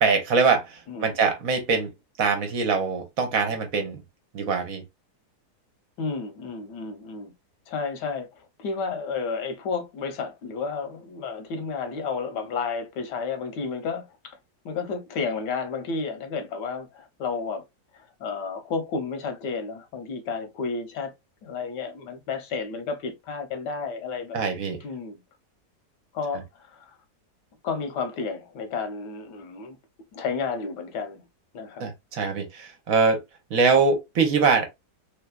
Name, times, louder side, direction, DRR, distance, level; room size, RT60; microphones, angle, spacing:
voice 1, 0.0-1.9 2.2-4.0 4.3-4.8 24.3-24.8 31.8-33.2 33.5-34.7, right 5 dB, 60° right, 1.1 m, -23 dB
voice 2, 6.0-7.3 7.7-14.4 14.6-17.6 17.9-21.1 21.4-24.4 24.8-25.2 26.1-26.9 27.6-29.8 30.1-31.3 31.5-31.8, left 5 dB, 80° left, 1.5 m, -32 dB
3.3 x 3.2 x 2.2 m
omnidirectional pair, 1.8 m